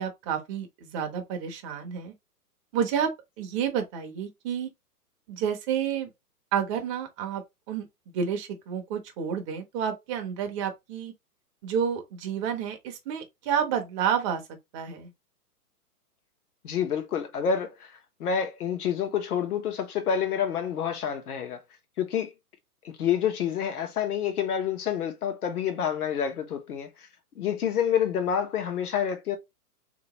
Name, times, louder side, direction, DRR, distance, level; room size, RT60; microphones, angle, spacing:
voice 1, 0.0-2.1 2.7-3.1 3.4-4.7 5.3-6.1 6.5-7.4 7.7-7.9 8.1-11.1 11.6-14.4 14.7-15.1, right 8 dB, 20° right, 0.5 m, -30 dB
voice 2, 16.6-17.9 18.2-21.6 22.0-22.3 22.8-27.1 27.4-29.4, left 8 dB, 70° left, 1.1 m, -28 dB
3.2 x 3.0 x 2.8 m
hypercardioid pair, 125°, 47 cm